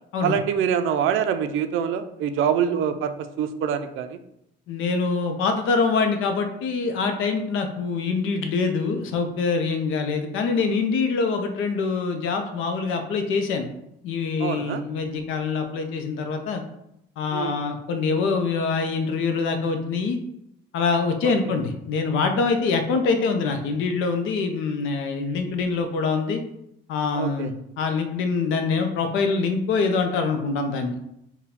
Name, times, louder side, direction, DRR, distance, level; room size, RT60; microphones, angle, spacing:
voice 1, 0.2-4.2 14.4-14.8 17.3-17.6 21.4-21.5 27.2-27.5, right 8 dB, 85° right, 9 dB, 0.4 m, -25 dB
voice 2, 4.7-13.7 14.0-16.6 17.2-20.2 20.7-26.4 26.9-31.0, left 4 dB, 90° left, 6 dB, 0.6 m, -24 dB
4.5 x 2.2 x 3.5 m, 0.80 s
cardioid pair, 90°, 20 cm